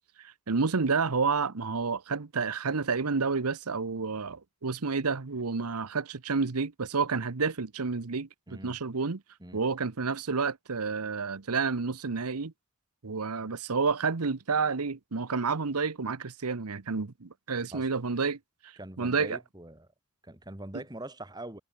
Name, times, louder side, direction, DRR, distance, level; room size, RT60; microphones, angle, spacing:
voice 1, 0.2-9.2 9.5-12.5 13.0-18.7 19.0-19.4, right 4 dB, 90° right, 1.0 m, -30 dB
voice 2, 18.8-19.9 20.2-21.6, right 1 dB, 20° right, 1.9 m, -43 dB
head